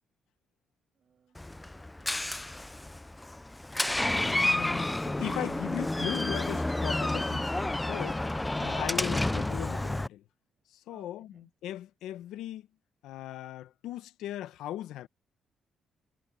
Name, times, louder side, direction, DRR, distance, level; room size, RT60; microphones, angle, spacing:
voice 1, 0.9-2.6 10.9-11.5, right 7 dB, 55° right, 6.8 m, -65 dB
Door, 1.4-10.1, left 1 dB, 10° left, 0.5 m, -30 dB
voice 2, 4.0-10.2 10.9-12.6 13.0-15.1, left 13 dB, 90° left, 1.0 m, -38 dB
cardioid pair, 90°, 0 cm